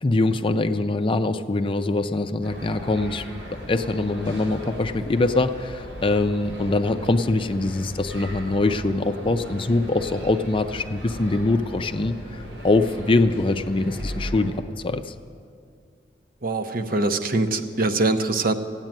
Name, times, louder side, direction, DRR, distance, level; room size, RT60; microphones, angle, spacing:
voice 1, 0.0-14.6 14.8-15.1, left 2 dB, 30° left, 9 dB, 0.5 m, -23 dB
sound 1, 2.4-14.5, equal, 85° right, 5.2 m, -37 dB
voice 2, 16.4-18.5, right 2 dB, 50° right, 8 dB, 0.8 m, -23 dB
15.0 x 9.0 x 9.0 m, 2.3 s
head